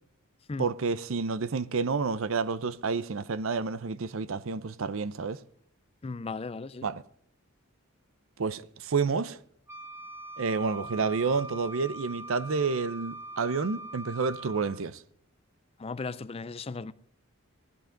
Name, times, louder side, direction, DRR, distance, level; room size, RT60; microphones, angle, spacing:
voice 1, 0.6-5.4 6.8-7.0 8.4-9.4 10.4-15.0, right 4 dB, 65° right, 0.6 m, -29 dB
voice 2, 6.0-6.9 15.8-16.9, left 4 dB, 25° left, 0.4 m, -36 dB
Wind instrument woodwind instrument, 9.7-14.8, right 2 dB, 10° right, 0.9 m, -42 dB
16.5 x 13.0 x 3.8 m
head